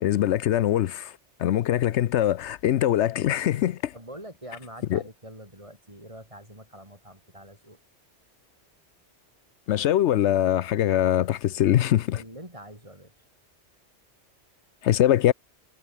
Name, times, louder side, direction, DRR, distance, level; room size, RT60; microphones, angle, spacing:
voice 1, 0.0-1.1 1.4-3.9 4.9-5.0 9.7-12.2 14.8-15.3, left 12 dB, 75° left, 0.9 m, -22 dB
voice 2, 3.9-7.8 12.1-13.1, right 1 dB, 25° right, 6.7 m, -44 dB
omnidirectional pair, 1.2 m